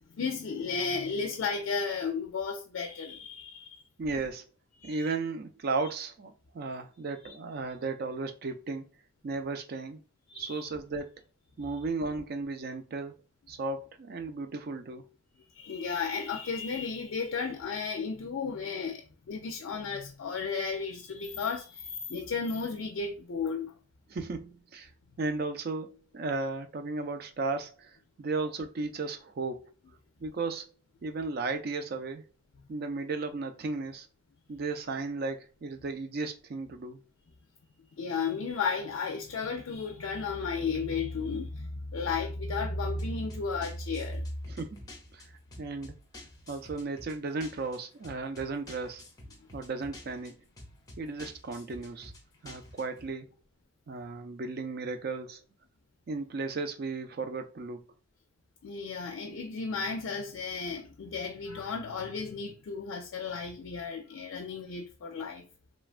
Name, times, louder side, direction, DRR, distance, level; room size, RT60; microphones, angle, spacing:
voice 1, 0.1-3.8 4.8-5.1 7.2-7.3 10.3-10.7 15.6-23.7 38.0-44.2 58.6-65.5, left 5 dB, 80° left, 0.4 m, -34 dB
voice 2, 4.0-4.4 4.8-8.9 9.2-10.0 10.3-11.2 11.6-13.1 13.5-15.0 24.1-24.9 25.2-29.7 30.2-30.7 31.0-32.2 32.7-34.1 34.5-37.0 44.5-45.9 46.5-49.0 49.5-50.4 51.0-52.1 52.4-53.3 53.9-55.4 56.1-57.8, right 3 dB, 50° right, 0.4 m, -35 dB
sound 1, 43.0-53.1, left 1 dB, 20° left, 0.5 m, -50 dB
3.1 x 2.2 x 2.4 m
head